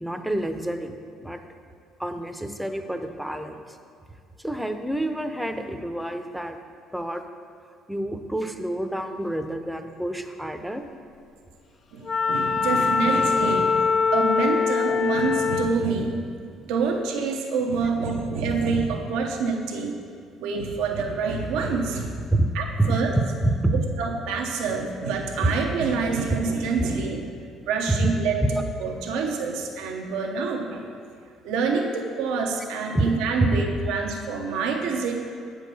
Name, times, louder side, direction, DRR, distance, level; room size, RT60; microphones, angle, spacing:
voice 1, 0.0-1.4 2.0-3.8 4.4-6.6 6.9-7.2 7.9-10.8 22.3-22.5 22.8-23.0 23.4-23.8 26.3-26.4 27.9-28.1 28.5-28.6 32.9-33.1 33.4-33.7, right 1 dB, ahead, 6 dB, 0.6 m, -27 dB
voice 2, 11.9-13.9 14.1-16.2 16.7-20.0 20.4-22.2 22.5-23.1 24.0-27.2 27.6-28.4 28.8-30.8 31.4-35.1, right 4 dB, 85° right, 2 dB, 0.8 m, -26 dB
Wind instrument woodwind instrument, 12.0-15.8, left 5 dB, 45° left, 0.3 m, -23 dB
7.7 x 4.7 x 6.9 m, 2.5 s
cardioid pair, 100°, 0 cm